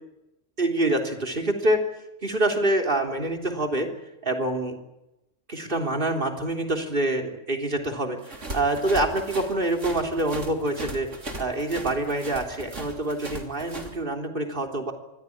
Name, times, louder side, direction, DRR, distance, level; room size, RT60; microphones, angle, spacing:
voice 1, 0.6-1.8 2.2-3.9 4.2-4.8 5.5-11.1 11.4-14.9, right 1 dB, 45° right, 3 dB, 3.7 m, -26 dB
sound 1, 8.2-13.9, right 2 dB, 80° right, 3.7 m, -37 dB
25.0 x 16.5 x 10.0 m, 0.92 s
omnidirectional pair, 1.2 m